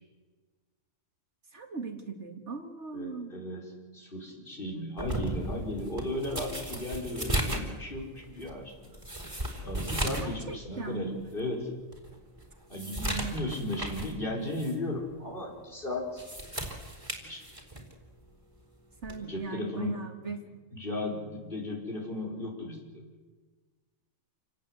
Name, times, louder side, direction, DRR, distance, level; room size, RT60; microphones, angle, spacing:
voice 1, 1.5-3.3 4.7-4.9 10.2-11.4 13.1-13.3 19.0-20.4, right 5 dB, 55° right, 5 dB, 2.3 m, -38 dB
voice 2, 2.9-3.6 3.9-9.0 9.6-11.6 12.7-16.2 17.2-17.6 19.2-20.0 20.2-20.3 20.7-22.8, left 1 dB, 40° left, -1 dB, 5.5 m, -35 dB
sound 1, 5.0-10.4 10.7-10.8 11.4-11.5 11.9-14.2 14.5-14.7 16.0-17.9 19.0-19.3, right 1 dB, 20° right, 3.9 m, -35 dB
28.5 x 18.5 x 8.2 m, 1.4 s
omnidirectional pair, 1.4 m